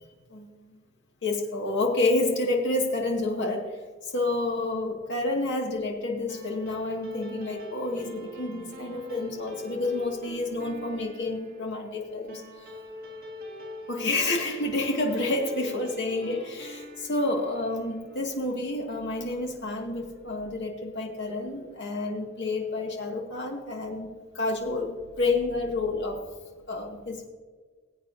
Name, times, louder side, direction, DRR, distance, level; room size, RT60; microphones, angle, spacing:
voice 1, 0.3-0.7 1.2-12.4 13.9-24.1 24.3-26.2 26.7-27.3, left 2 dB, 55° left, 0 dB, 2.1 m, -29 dB
sound 1, 6.3-19.0, equal, 45° right, 2.0 m, -43 dB
20.5 x 8.5 x 2.7 m, 1.5 s
head